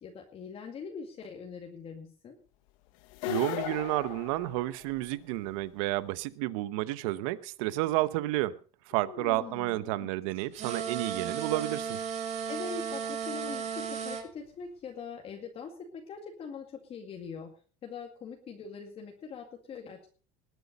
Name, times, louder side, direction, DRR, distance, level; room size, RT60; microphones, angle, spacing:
voice 1, 0.0-2.4 9.0-10.1 10.3-10.5 12.5-17.5 17.8-20.0, left 5 dB, 35° left, 1 dB, 2.2 m, -42 dB
sound 1, 3.1-5.1, left 16 dB, 80° left, 1.2 m, -36 dB
voice 2, 3.3-8.6 8.9-12.0, right 16 dB, 85° right, 16 dB, 1.0 m, -31 dB
sound 2, 10.5-14.2, right 7 dB, 40° right, 4.8 m, -35 dB
20.0 x 8.4 x 5.3 m, 0.40 s
cardioid pair, 140°, 17 cm